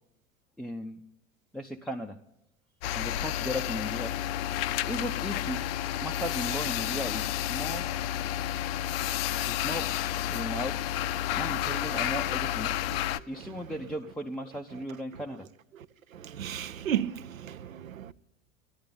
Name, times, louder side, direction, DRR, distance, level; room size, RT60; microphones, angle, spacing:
voice 1, 0.6-1.0 1.5-2.2 2.9-4.2 4.9-5.6 6.0-7.9 9.5-9.9 10.3-10.8 11.4-12.7 13.2-15.5, equal, ahead, 0.5 m, -36 dB
sound 1, 2.8-13.2, left 12 dB, 45° left, 0.6 m, -31 dB
voice 2, 16.4-18.1, right 10 dB, 75° right, 0.7 m, -33 dB
14.0 x 11.0 x 8.4 m
figure-of-eight pair, 80°, 41 cm